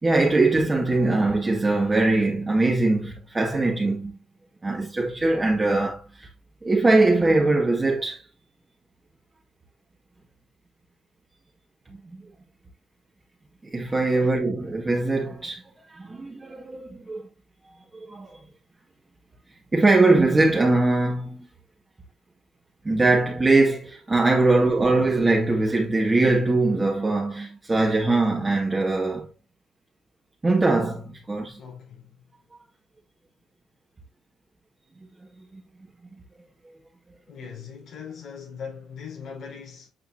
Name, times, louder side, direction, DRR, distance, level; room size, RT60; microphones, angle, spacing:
voice 1, 0.0-4.2 4.6-6.3 6.6-8.2 12.1-12.2 13.6-15.6 15.9-17.2 17.9-18.4 19.7-21.5 22.8-29.3 30.4-31.6 35.5-35.6, right 2 dB, 25° right, 2.2 m, -21 dB
voice 2, 31.6-32.1 37.3-39.9, left 6 dB, 75° left, 4.7 m, -40 dB
9.3 x 5.8 x 2.8 m
cardioid pair, 90°, 0 cm